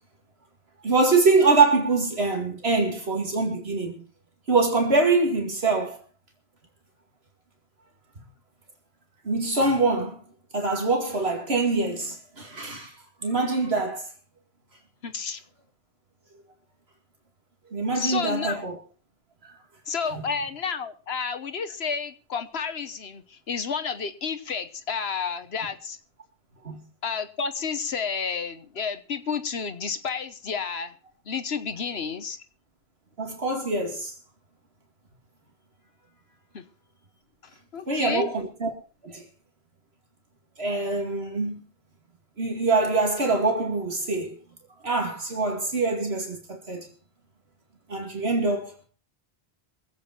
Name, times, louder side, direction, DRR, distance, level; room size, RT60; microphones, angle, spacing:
voice 1, 0.8-4.0 4.5-6.0 9.2-10.2 10.5-12.9 13.2-14.1 17.7-18.8 20.1-20.2 26.6-26.8 33.2-34.1 37.9-38.7 39.0-39.2 40.6-41.6 42.4-44.3 44.8-46.9 47.9-48.7, right 3 dB, 75° right, 2.5 m, -24 dB
voice 2, 15.0-15.4 17.9-18.6 19.9-26.0 27.0-30.9 31.3-32.4 36.5-36.6 37.7-38.3, left 5 dB, 75° left, 1.3 m, -31 dB
23.5 x 8.5 x 4.4 m
omnidirectional pair, 1.1 m